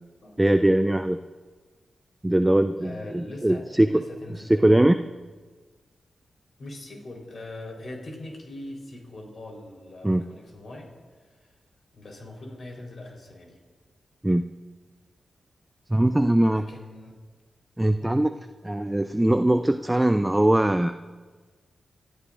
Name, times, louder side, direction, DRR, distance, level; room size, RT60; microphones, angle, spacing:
voice 1, 0.4-1.2 2.2-4.0 4.3-5.0 10.0-10.2 14.2-14.5 15.9-16.6 17.8-18.3 18.6-20.9, right 1 dB, 15° right, 9 dB, 0.5 m, -21 dB
voice 2, 2.8-5.0 6.6-10.9 11.2-11.5 11.9-13.6 16.5-17.2 18.0-18.2, left 1 dB, 60° left, -1 dB, 4.1 m, -42 dB
27.0 x 13.0 x 2.6 m, 1.4 s
cardioid pair, 50°, 0 cm